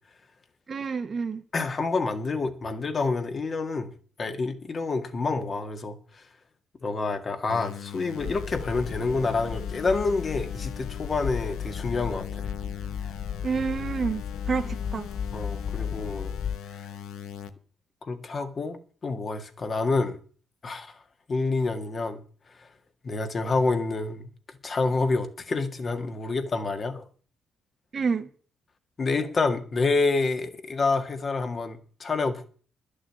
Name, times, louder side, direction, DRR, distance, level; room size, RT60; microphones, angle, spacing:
voice 1, 0.7-1.4 13.4-15.1 27.9-28.3, right 5 dB, 40° right, 1.2 m, -29 dB
voice 2, 1.5-3.9 4.2-6.2 6.8-12.5 15.3-16.3 16.7-16.9 18.0-20.2 20.6-21.0 21.3-22.2 22.6-22.7 23.0-27.1 29.0-32.5, left 3 dB, 40° left, 1.8 m, -28 dB
sound 1, 7.5-17.5, left 8 dB, 85° left, 1.0 m, -41 dB
sound 2, 8.2-16.6, left 7 dB, 55° left, 0.5 m, -34 dB
11.0 x 6.5 x 9.2 m
cardioid pair, 90°, 0 cm